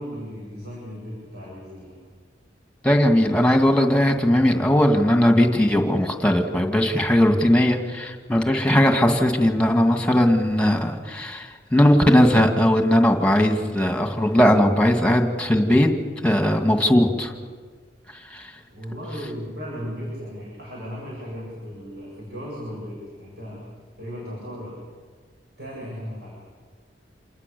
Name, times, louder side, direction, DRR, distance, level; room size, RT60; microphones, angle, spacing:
voice 1, 0.0-2.0 8.4-8.6 18.7-23.7 24.0-24.8 25.6-26.4, equal, 60° right, -4 dB, 7.8 m, -36 dB
voice 2, 2.8-15.9 16.2-17.3 18.3-18.5, left 1 dB, 5° left, 4 dB, 2.1 m, -19 dB
27.5 x 20.0 x 7.0 m, 1.5 s
head